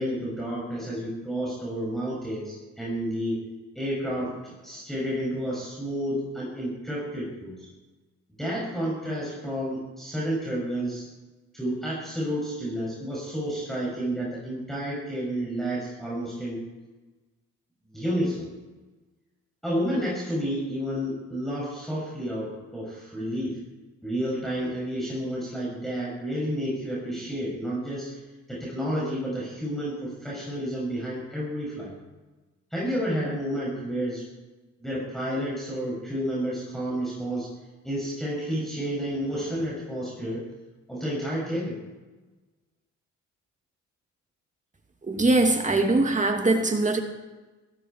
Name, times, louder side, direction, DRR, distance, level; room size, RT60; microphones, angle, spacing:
voice 1, 0.0-3.4 3.7-4.4 4.6-7.6 8.4-11.0 11.5-16.6 17.9-18.5 19.6-23.6 24.0-28.1 28.5-31.9 32.7-34.2 34.8-37.5 37.8-40.4 40.9-41.8, equal, ahead, -7 dB, 7.4 m, -30 dB
voice 2, 45.0-47.0, right 2 dB, 25° right, 4 dB, 2.5 m, -22 dB
17.0 x 16.5 x 4.7 m, 1.2 s
cardioid pair, 90°, 30 cm